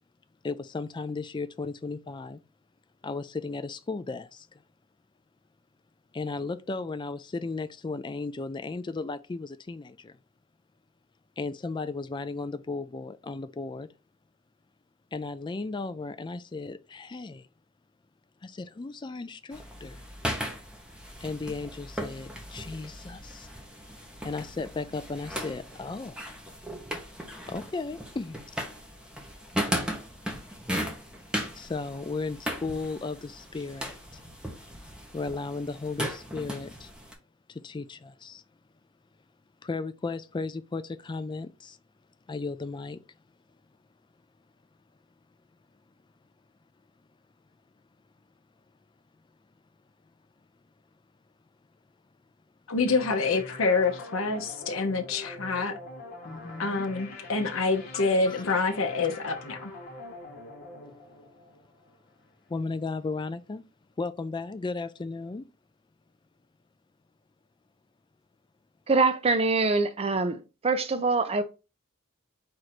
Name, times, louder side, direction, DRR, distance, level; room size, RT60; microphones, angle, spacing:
voice 1, 0.4-2.4 3.0-4.5 6.1-10.1 11.4-13.9 15.1-17.5 18.4-20.0 21.2-23.5 24.2-26.2 27.5-28.4 31.5-34.2 35.1-36.9 37.5-38.4 39.6-41.8 42.3-43.0 56.2-56.9 57.9-58.4 62.5-63.6 64.0-65.4, left 3 dB, 20° left, 0.3 m, -35 dB
sound 1, 19.5-37.1, equal, 5° right, 0.8 m, -37 dB
voice 2, 52.7-55.7 56.6-59.7, left 3 dB, 70° left, 0.7 m, -27 dB
sound 2, 52.9-62.2, left 2 dB, 50° left, 1.3 m, -44 dB
voice 3, 68.9-71.4, right 3 dB, 30° right, 0.5 m, -24 dB
4.5 x 2.6 x 4.2 m
head